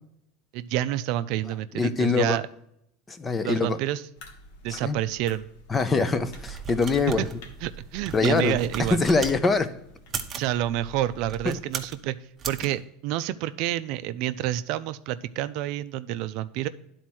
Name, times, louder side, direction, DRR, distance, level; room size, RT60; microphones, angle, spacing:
voice 1, 0.5-2.5 3.4-4.0 4.6-5.4 7.2-7.3 7.6-9.0 10.4-12.2 12.5-16.7, right 13 dB, 55° right, 12 dB, 0.4 m, -28 dB
voice 2, 1.7-2.4 3.1-3.8 4.7-5.0 5.7-7.3 8.1-9.7, left 4 dB, 15° left, 12 dB, 0.5 m, -24 dB
sound 1, 4.2-11.5, left 1 dB, 75° left, 1.4 m, -49 dB
sound 2, 6.2-9.4 10.0-10.5 11.2-12.0 12.4-12.7, right 6 dB, 25° right, 0.8 m, -37 dB
10.5 x 4.3 x 6.2 m, 0.76 s
supercardioid pair, 150°, 0 cm